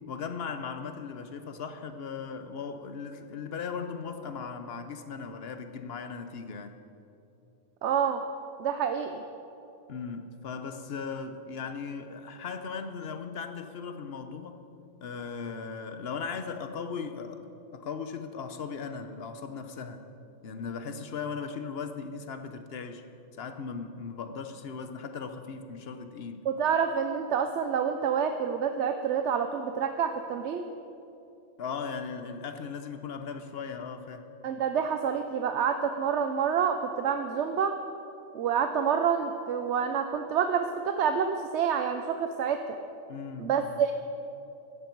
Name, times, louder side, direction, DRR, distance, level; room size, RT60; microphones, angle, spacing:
voice 1, 0.1-6.7 9.9-14.6 15.0-17.5 17.7-20.1 20.4-23.0 23.4-26.5 31.6-34.2 43.1-43.8, left 5 dB, 60° left, 8 dB, 1.1 m, -38 dB
voice 2, 7.8-8.2 8.6-9.2 26.5-30.6 34.4-37.7 38.3-42.6 43.4-43.9, right 7 dB, 75° right, 7 dB, 0.9 m, -28 dB
16.0 x 12.5 x 4.6 m, 2.8 s
omnidirectional pair, 1.2 m